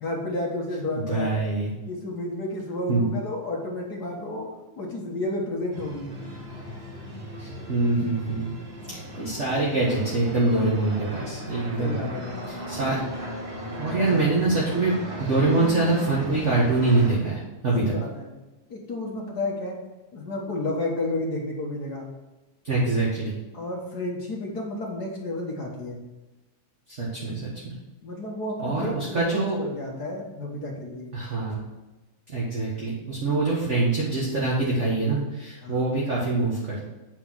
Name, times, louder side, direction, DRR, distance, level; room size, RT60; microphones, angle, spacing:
voice 1, 0.0-1.4 1.9-4.5 4.8-6.1 11.8-12.4 13.9-14.2 17.8-18.3 18.7-19.8 20.1-22.1 23.5-26.0 28.0-31.2 35.6-35.9, left 2 dB, 50° left, -1 dB, 1.3 m, -31 dB
voice 2, 1.1-1.7 2.9-3.1 7.4-8.5 8.9-12.0 12.5-13.0 13.8-17.9 22.6-23.3 26.9-27.7 28.6-29.6 31.1-31.6 32.3-36.9, right 2 dB, 30° right, -5 dB, 1.4 m, -24 dB
sound 1, 5.7-17.2, equal, 15° right, 2.6 m, -36 dB
9.2 x 4.6 x 6.2 m, 1.1 s
omnidirectional pair, 3.5 m